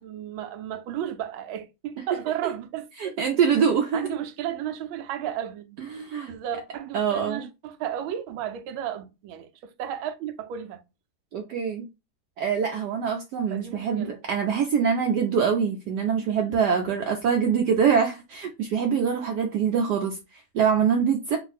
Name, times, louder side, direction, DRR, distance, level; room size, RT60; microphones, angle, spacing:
voice 1, 0.0-3.2 3.9-5.8 6.3-10.8 13.5-14.2, right 10 dB, 90° right, 1.4 m, -33 dB
voice 2, 3.0-4.1 5.8-6.3 6.9-7.5 11.3-11.9 12.4-21.4, right 7 dB, 70° right, 1.0 m, -24 dB
3.5 x 2.6 x 3.9 m
omnidirectional pair, 2.2 m